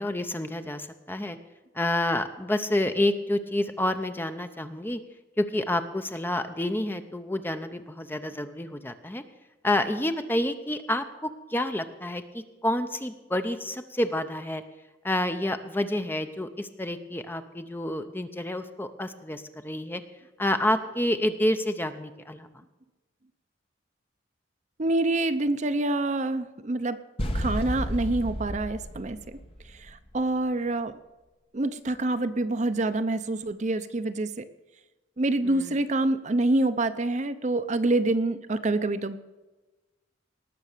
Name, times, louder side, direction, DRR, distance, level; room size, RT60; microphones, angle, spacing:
voice 1, 0.0-1.4 1.7-5.0 5.4-9.2 9.6-14.6 15.0-20.0 20.4-22.6 35.4-35.8, left 1 dB, 10° left, 8 dB, 0.6 m, -29 dB
voice 2, 24.8-27.0 27.3-29.4 29.6-31.0 31.5-34.5 35.2-39.2, right 2 dB, 40° right, 11 dB, 0.6 m, -26 dB
sound 1, 27.2-30.1, equal, 30° left, 1.2 m, -32 dB
19.0 x 6.7 x 6.6 m, 1.1 s
head